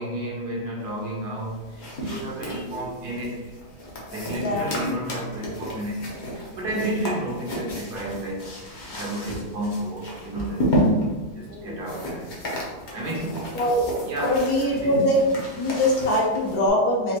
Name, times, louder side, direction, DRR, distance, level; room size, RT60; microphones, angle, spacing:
voice 1, 0.0-3.5 4.1-8.5 8.8-10.8 11.3-13.5 14.0-14.4 14.7-15.0, right 1 dB, 70° right, -3 dB, 1.4 m, -32 dB
sound 1, 1.4-16.7, equal, 50° left, 0.6 m, -31 dB
voice 2, 2.4-2.9 4.4-5.0 11.5-11.9 13.5-15.2 15.5-17.2, equal, 65° left, -3 dB, 1.3 m, -23 dB
4.2 x 2.5 x 2.9 m, 1.2 s
omnidirectional pair, 1.8 m